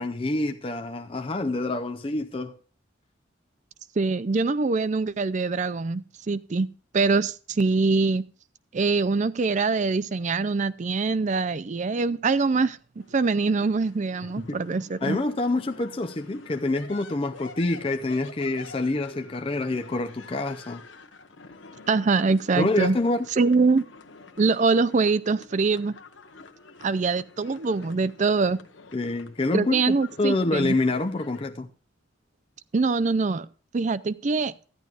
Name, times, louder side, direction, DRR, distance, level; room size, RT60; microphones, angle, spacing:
voice 1, 0.0-2.5 14.5-14.6 15.0-20.8 22.6-23.3 28.9-31.7, left 2 dB, 30° left, 0.5 m, -27 dB
voice 2, 4.0-6.7 6.9-8.2 8.7-15.2 21.9-23.0 23.4-23.8 24.4-26.0 26.8-28.6 29.5-30.7 32.7-33.5 33.7-34.5, right 4 dB, 40° right, 0.4 m, -24 dB
sound 1, 13.0-31.4, left 3 dB, 75° left, 1.1 m, -48 dB
14.0 x 10.5 x 2.4 m
head